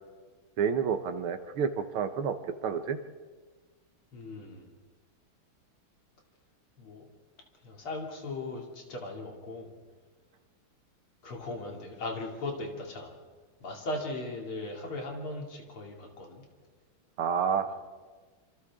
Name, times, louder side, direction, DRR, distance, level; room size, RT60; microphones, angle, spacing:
voice 1, 0.6-2.4 2.6-3.0 17.2-17.7, right 7 dB, 80° right, 9 dB, 2.0 m, -29 dB
voice 2, 4.1-4.8 6.8-7.1 7.6-9.7 11.2-13.1 13.6-16.4 17.7-17.8, left 2 dB, 80° left, 0 dB, 3.7 m, -38 dB
26.5 x 26.5 x 3.7 m, 1.5 s
omnidirectional pair, 2.3 m